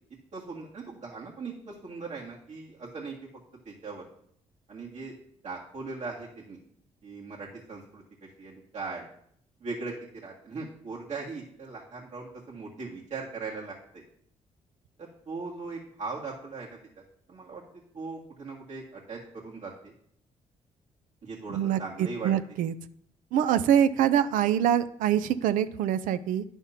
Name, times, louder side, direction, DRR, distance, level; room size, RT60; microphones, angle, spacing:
voice 1, 0.3-3.1 3.7-4.0 4.7-5.2 5.4-6.6 7.0-8.0 8.4-9.1 9.6-14.0 15.0-16.7 17.3-17.6 17.9-19.9 21.2-22.3, right 4 dB, 60° right, -5 dB, 1.8 m, -39 dB
voice 2, 21.5-22.7 23.3-26.4, right 10 dB, 85° right, 13 dB, 0.5 m, -25 dB
9.9 x 3.5 x 5.7 m, 0.65 s
cardioid pair, 70°, 13 cm